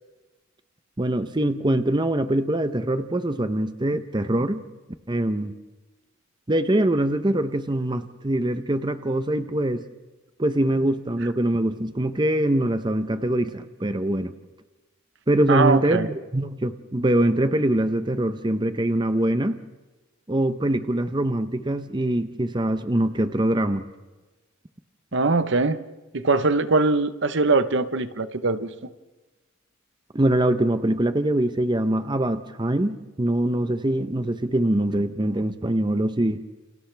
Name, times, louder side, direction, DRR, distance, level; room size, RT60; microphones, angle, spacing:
voice 1, 1.0-4.6 5.1-5.5 6.5-9.8 10.4-14.3 15.3-19.6 20.3-23.8 30.1-36.4, right 1 dB, 20° right, 10 dB, 0.8 m, -23 dB
voice 2, 15.5-16.1 25.1-25.8 26.1-28.7, right 3 dB, 60° right, 11 dB, 1.0 m, -21 dB
29.5 x 28.5 x 3.4 m, 1.2 s
head